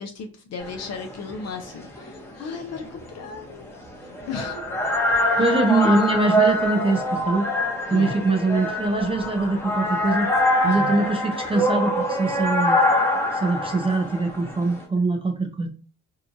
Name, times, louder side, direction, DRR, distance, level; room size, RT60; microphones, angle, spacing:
voice 1, 0.0-3.7 4.3-4.6 5.4-5.5 7.9-8.2 10.6-11.0, left 5 dB, 60° left, 4 dB, 0.6 m, -35 dB
sound 1, 0.6-14.8, left 1 dB, 10° left, 0.8 m, -24 dB
voice 2, 5.4-7.5 7.9-10.3 10.6-12.8 13.3-15.7, right 3 dB, 20° right, 4 dB, 0.4 m, -23 dB
2.7 x 2.2 x 2.6 m, 0.35 s
cardioid pair, 90°, 30 cm